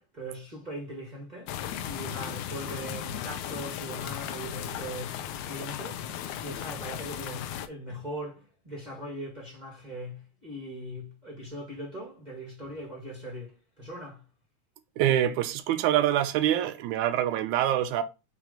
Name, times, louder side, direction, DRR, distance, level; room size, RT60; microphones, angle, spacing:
voice 1, 0.0-1.6 1.8-14.2, equal, 25° right, 1.0 m, -40 dB
sound 1, 1.5-7.7, left 10 dB, 80° left, 2.0 m, -36 dB
voice 2, 15.0-18.0, right 11 dB, 80° right, 2.1 m, -25 dB
6.1 x 3.3 x 5.1 m
omnidirectional pair, 3.5 m